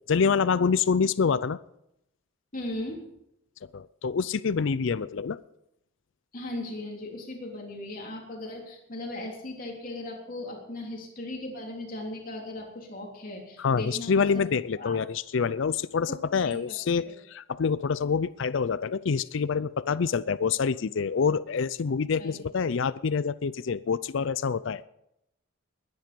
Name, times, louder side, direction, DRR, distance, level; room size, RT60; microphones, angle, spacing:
voice 1, 0.1-1.6 3.7-5.4 13.6-24.8, left 5 dB, 65° left, 17 dB, 0.4 m, -26 dB
voice 2, 2.5-3.0 6.3-14.5 14.8-15.0 16.4-16.6 22.2-22.4, left 1 dB, 40° left, 0 dB, 3.3 m, -37 dB
21.5 x 10.5 x 5.2 m, 0.81 s
head